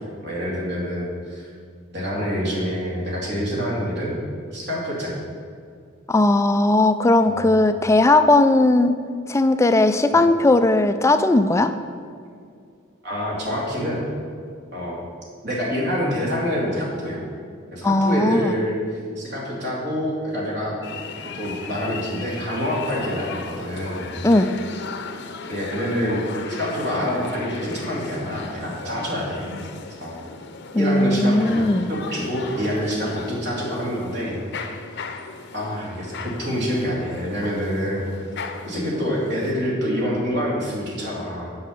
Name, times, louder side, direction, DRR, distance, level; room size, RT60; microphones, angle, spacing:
voice 1, 0.2-1.5 1.9-4.1 4.5-5.1 7.2-7.5 10.1-10.2 13.0-14.0 14.7-15.0 15.4-17.2 17.7-18.8 19.2-20.8 21.2-24.0 25.5-26.2 26.5-29.5 30.0-30.2 30.8-31.6 31.9-34.4 35.5-38.1 38.7-41.5, equal, 60° right, -4 dB, 2.5 m, -26 dB
voice 2, 6.1-9.0 9.3-11.7 17.8-18.6 24.2-24.5 30.7-31.9, left 2 dB, 15° left, 10 dB, 0.4 m, -17 dB
sound 1, 20.8-39.5, left 4 dB, 60° left, 0.7 m, -36 dB
8.3 x 5.6 x 7.2 m, 2.3 s
head